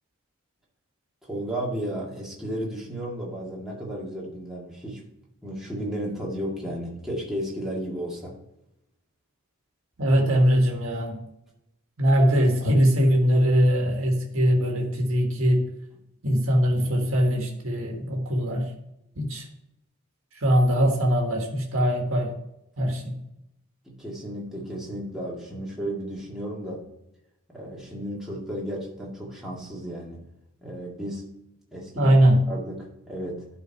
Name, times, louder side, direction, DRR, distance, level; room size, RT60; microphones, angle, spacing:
voice 1, 1.2-5.0 5.4-8.4 23.9-26.9 27.5-30.3 30.6-31.3 31.7-32.1 32.5-33.5, right 1 dB, ahead, -5 dB, 2.0 m, -33 dB
voice 2, 10.0-11.2 12.0-15.6 16.2-18.7 19.1-19.5 20.3-22.3 22.8-23.2 31.9-32.5, equal, 75° right, 1 dB, 1.6 m, -21 dB
11.5 x 4.4 x 4.6 m, 0.83 s
head